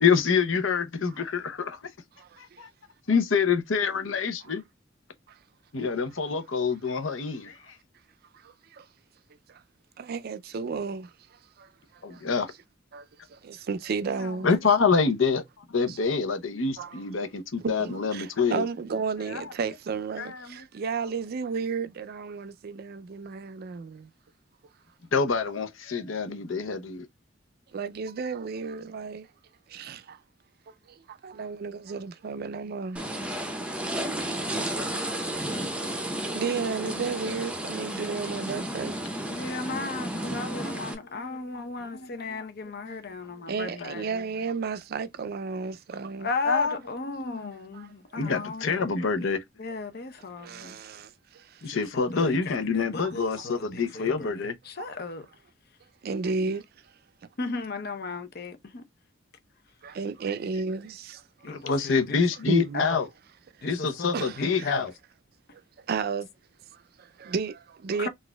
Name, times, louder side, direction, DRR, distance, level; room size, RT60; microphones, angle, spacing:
voice 1, 0.0-1.9 3.1-4.6 5.7-7.7 12.0-12.5 14.2-15.4 15.7-18.6 19.3-19.5 20.2-20.6 25.1-27.1 40.3-41.7 41.9-42.5 42.8-43.2 46.4-46.8 47.1-47.9 48.2-49.4 51.6-54.5 57.4-58.2 61.4-63.1 63.6-64.9, left 5 dB, 85° left, 0.7 m, -27 dB
voice 2, 8.4-8.9 9.5-9.6 10.0-11.1 11.6-11.7 12.1-12.2 12.9-14.5 15.9-16.0 16.8-17.0 17.6-24.1 27.7-29.3 29.7-30.2 30.9-33.1 33.9-34.1 34.4-34.5 34.9-35.2 35.7-36.1 36.3-39.0 43.5-46.3 47.7-47.9 50.4-51.7 53.0-53.1 54.8-54.9 56.0-56.6 59.8-61.5 62.5-62.8 63.6-63.7 64.1-64.7 65.8-66.3 66.7-68.1, right 5 dB, 50° right, 0.4 m, -33 dB
sound 1, 32.9-40.9, right 1 dB, 5° right, 0.6 m, -32 dB
voice 3, 39.3-44.2 46.2-49.3 49.6-50.8 51.6-55.3 57.4-58.8 61.4-63.0 63.6-64.9 68.0-68.1, left 3 dB, 55° left, 0.7 m, -36 dB
4.0 x 2.5 x 2.2 m
head